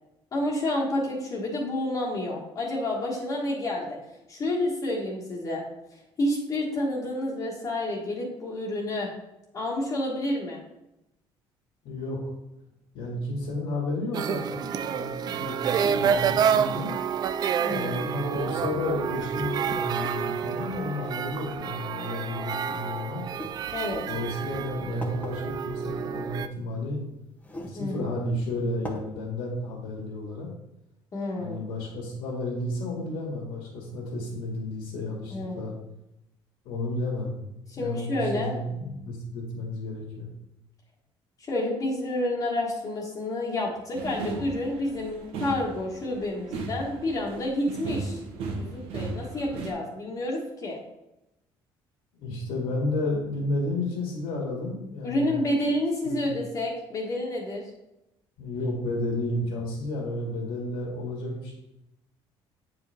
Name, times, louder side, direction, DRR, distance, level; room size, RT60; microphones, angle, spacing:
voice 1, 0.3-4.0 4.3-5.6 6.2-9.1 9.5-10.6 17.6-18.0 23.7-24.0 27.7-28.0 31.1-31.6 35.3-35.6 37.7-38.6 41.5-48.2 48.6-50.8 55.0-57.7, left 1 dB, 35° left, -3 dB, 1.4 m, -29 dB
voice 2, 11.8-12.2 12.9-16.9 17.7-23.2 24.1-27.0 27.7-30.5 31.4-35.7 36.6-37.4 37.7-40.3 52.1-55.3 56.0-56.4 58.4-61.5, left 2 dB, 85° left, -4 dB, 2.2 m, -32 dB
sound 1, 14.1-26.5, right 8 dB, 45° right, 0.3 m, -29 dB
sound 2, 23.3-23.5 24.4-24.5 25.0-25.3 26.6-26.7 27.4-27.8 28.2-28.3 28.8-29.0, left 1 dB, 15° left, 0.9 m, -36 dB
sound 3, 43.9-49.7, right 3 dB, 80° right, 1.3 m, -36 dB
8.5 x 4.9 x 3.5 m, 0.90 s
cardioid pair, 135°, 10 cm